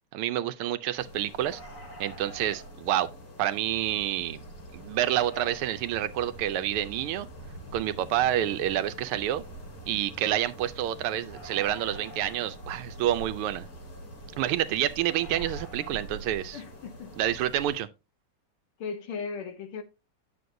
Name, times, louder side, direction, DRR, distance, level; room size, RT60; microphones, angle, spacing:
voice 1, 0.1-1.6 2.0-3.1 3.4-4.4 4.7-7.3 7.7-9.4 9.9-13.7 14.4-16.6 17.2-17.9, right 12 dB, 80° right, 1.5 m, -28 dB
sound 1, 1.0-17.8, right 1 dB, 90° left, 4.3 m, -44 dB
voice 2, 16.5-17.2 18.8-19.8, left 5 dB, 70° left, 1.8 m, -37 dB
9.3 x 6.5 x 2.6 m
omnidirectional pair, 2.4 m